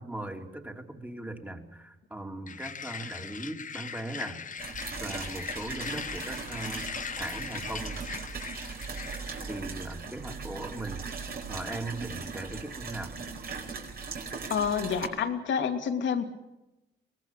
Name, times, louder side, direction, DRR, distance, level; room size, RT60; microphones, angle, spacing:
voice 1, 0.0-8.0 9.5-11.0 11.5-13.2, right 1 dB, 10° right, 4 dB, 3.2 m, -39 dB
sound 1, 2.5-9.6, left 7 dB, 40° left, 1.0 m, -40 dB
sound 2, 4.6-15.1, right 5 dB, 50° right, 4.9 m, -39 dB
voice 2, 14.5-16.2, left 7 dB, 70° left, 6 dB, 2.7 m, -28 dB
23.0 x 19.5 x 7.6 m, 0.96 s
cardioid pair, 90°, 20 cm